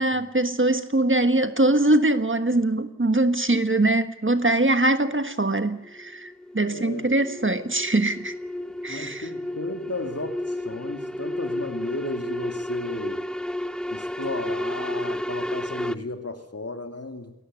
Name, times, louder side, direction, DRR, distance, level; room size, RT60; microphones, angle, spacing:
voice 1, 0.0-8.3 8.8-9.3, right 2 dB, 40° right, 1.5 m, -22 dB
sound 1, 5.4-15.9, left 1 dB, ahead, 0.8 m, -32 dB
voice 2, 6.6-7.1 8.9-13.2 13.9-17.3, left 2 dB, 50° left, 2.8 m, -34 dB
21.5 x 18.0 x 9.2 m
wide cardioid pair, 55°, 33 cm